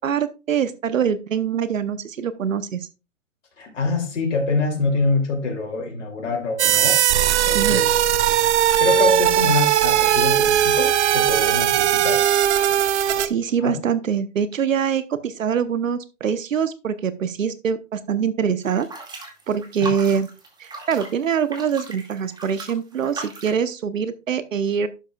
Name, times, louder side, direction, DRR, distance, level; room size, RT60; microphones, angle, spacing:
voice 1, 0.0-2.9 7.5-7.8 13.2-18.9 19.5-20.3 20.6-24.9, right 7 dB, 90° right, 14 dB, 0.9 m, -24 dB
voice 2, 3.6-7.0 7.5-7.9 8.8-12.2 13.6-13.8, left 3 dB, 70° left, 1 dB, 2.9 m, -25 dB
sound 1, 6.6-13.3, right 11 dB, 60° right, 0.8 m, -18 dB
sound 2, 18.6-23.6, right 2 dB, 10° right, 2.1 m, -37 dB
11.0 x 7.2 x 2.3 m, 0.29 s
hypercardioid pair, 125°, 38 cm